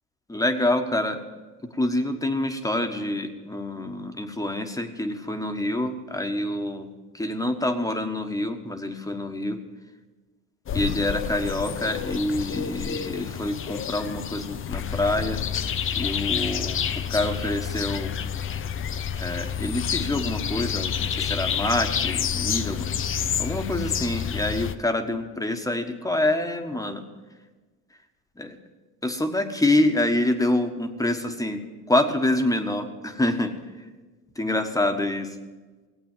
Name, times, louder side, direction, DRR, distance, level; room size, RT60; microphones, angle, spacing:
voice 1, 0.3-1.2 1.7-6.9 7.1-9.6 10.7-15.4 15.9-16.8 17.1-18.1 19.2-22.9 23.4-27.0 28.4-28.6 29.0-31.6 31.9-33.5 34.4-35.4, left 1 dB, 10° left, 6 dB, 1.4 m, -26 dB
sound 1, 10.7-24.7, left 8 dB, 30° left, 0.7 m, -29 dB
17.5 x 8.5 x 7.4 m, 1.3 s
supercardioid pair, 95°, 42 cm